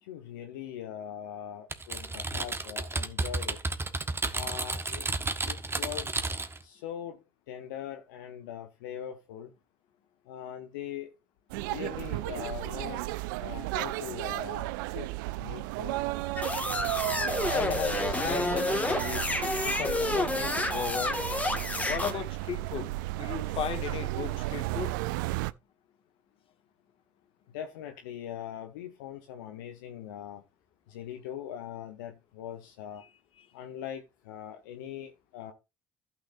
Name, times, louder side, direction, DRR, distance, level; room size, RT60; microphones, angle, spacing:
voice 1, 0.0-3.6 4.3-5.1 5.5-6.2 6.6-9.5 10.3-11.1 11.7-13.0 13.4-15.1 15.4-16.0 27.5-30.4 30.9-33.1 33.5-35.5, left 10 dB, 85° left, 1.0 m, -41 dB
Typing, 1.7-6.6, right 3 dB, 20° right, 1.3 m, -32 dB
sound 1, 11.5-25.5, right 18 dB, 80° right, 0.4 m, -34 dB
sound 2, 16.4-22.1, left 2 dB, 15° left, 1.9 m, -30 dB
voice 2, 17.5-21.2 21.9-22.9 23.2-24.9, left 8 dB, 60° left, 1.9 m, -35 dB
14.5 x 6.2 x 2.6 m
hypercardioid pair, 60°, 11 cm